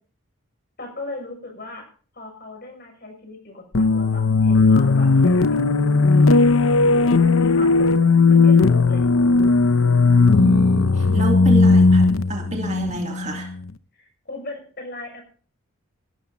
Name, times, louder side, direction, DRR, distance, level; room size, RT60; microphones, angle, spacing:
voice 1, 0.8-1.9 2.1-5.6 6.1-6.6 7.3-7.9 8.3-9.1 13.9-15.2, left 2 dB, 45° left, 3 dB, 6.9 m, -37 dB
sound 1, 3.7-13.6, left 3 dB, 75° left, 0.8 m, -16 dB
voice 2, 10.1-13.5, right 1 dB, 35° right, 3 dB, 2.3 m, -29 dB
17.0 x 13.0 x 4.1 m, 0.41 s
head